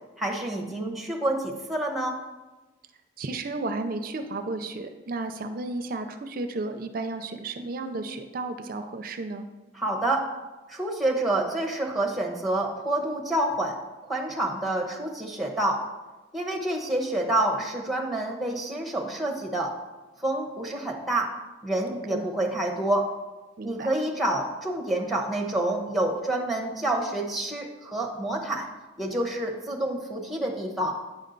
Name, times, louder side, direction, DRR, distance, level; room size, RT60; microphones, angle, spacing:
voice 1, 0.2-2.2 9.7-10.3 10.7-13.8 14.1-15.8 16.3-19.7 20.2-21.3 21.6-23.1 23.6-28.7 29.0-30.9, right 1 dB, ahead, 1 dB, 0.9 m, -28 dB
voice 2, 3.2-9.5 21.9-22.3 23.6-23.9, right 2 dB, 50° right, 8 dB, 0.5 m, -33 dB
9.0 x 5.4 x 3.9 m, 1.1 s
head